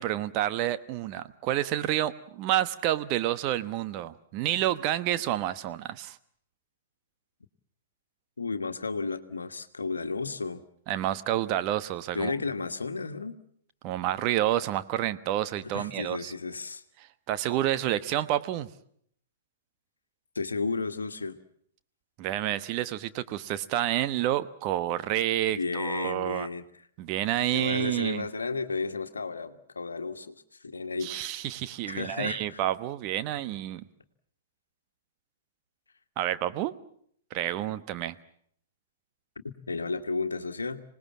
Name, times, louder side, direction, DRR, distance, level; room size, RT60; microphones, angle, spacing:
voice 1, 0.0-6.2 10.9-12.3 13.8-16.3 17.0-18.7 22.2-26.5 27.0-28.3 31.0-33.9 36.2-36.7 37.3-38.1, right 13 dB, 40° right, 12 dB, 1.1 m, -29 dB
voice 2, 8.4-10.6 12.1-13.4 15.6-16.8 20.3-21.4 25.5-26.6 27.4-31.1 31.9-32.6 39.7-40.8, left 4 dB, 80° left, 9 dB, 1.5 m, -33 dB
26.0 x 19.0 x 7.4 m, 0.65 s
figure-of-eight pair, 110°, 0 cm